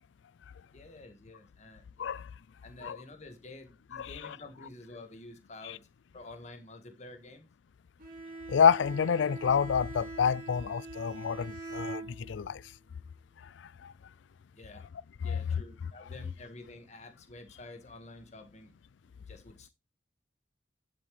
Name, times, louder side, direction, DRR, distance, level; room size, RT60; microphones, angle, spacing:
voice 1, 0.7-2.2 2.6-5.9 6.1-7.5 14.5-14.8 15.2-18.7 19.0-19.7, left 2 dB, 35° left, 1.7 m, -49 dB
voice 2, 4.0-4.3 8.5-12.6 13.8-13.9 15.2-15.4, left 7 dB, 80° left, 0.4 m, -28 dB
Bowed string instrument, 8.0-12.6, right 3 dB, 50° right, 3.0 m, -43 dB
11.0 x 7.4 x 3.2 m
head